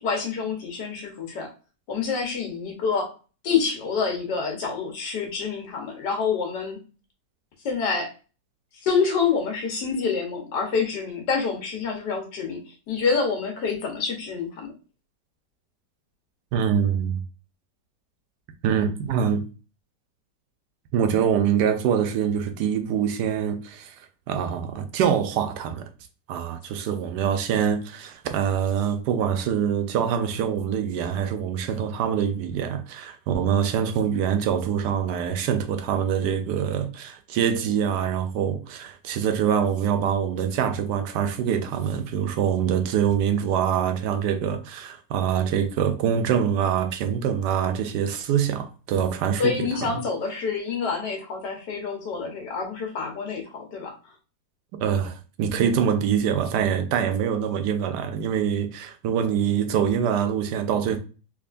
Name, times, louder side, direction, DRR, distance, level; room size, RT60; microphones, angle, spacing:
voice 1, 0.0-1.5 1.9-3.1 3.4-6.8 7.6-8.1 8.7-14.7 49.4-53.9, left 5 dB, 75° left, 1.6 m, -27 dB
voice 2, 16.5-17.2 18.6-19.4 20.9-23.9 24.3-25.9 26.3-50.0 54.8-61.0, right 8 dB, 75° right, 1.2 m, -24 dB
3.5 x 3.2 x 2.4 m
omnidirectional pair, 1.8 m